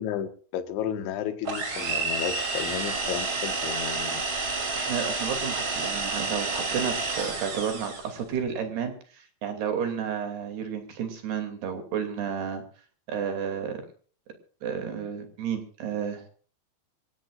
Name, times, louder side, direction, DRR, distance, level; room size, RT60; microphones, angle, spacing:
voice 1, 0.0-4.2, left 10 dB, 75° left, 3.7 m, -33 dB
sound 1, 1.5-8.2, right 3 dB, 30° right, 3.1 m, -30 dB
voice 2, 4.8-12.6 13.1-13.9 14.6-16.3, right 7 dB, 60° right, 4.5 m, -31 dB
26.5 x 16.0 x 2.5 m
omnidirectional pair, 5.5 m